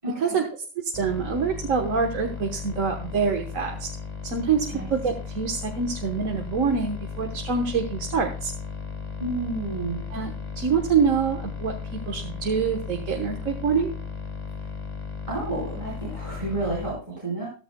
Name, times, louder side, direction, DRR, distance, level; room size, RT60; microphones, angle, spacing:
voice 1, 0.0-0.4 4.7-4.9 9.2-10.0 15.3-17.5, right 2 dB, 25° right, -4 dB, 4.6 m, -30 dB
voice 2, 0.8-3.9 4.2-8.5 10.1-10.3 10.6-13.9, right 6 dB, 75° right, 2 dB, 1.6 m, -25 dB
sound 1, 0.9-16.9, left 5 dB, 30° left, 1.7 m, -35 dB
14.0 x 14.0 x 2.2 m, 0.36 s
omnidirectional pair, 1.4 m